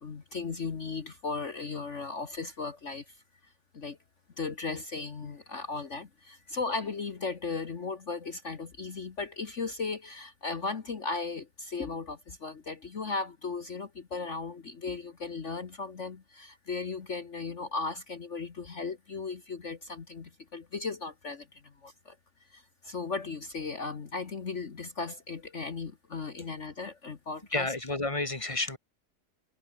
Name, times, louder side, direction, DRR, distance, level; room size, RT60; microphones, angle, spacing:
voice 1, 0.0-3.0 3.7-4.0 4.4-22.2 22.5-27.7, left 4 dB, 45° left, 1.7 m, -36 dB
voice 2, 27.5-28.8, left 2 dB, 20° left, 2.1 m, -31 dB
omnidirectional pair, 1.8 m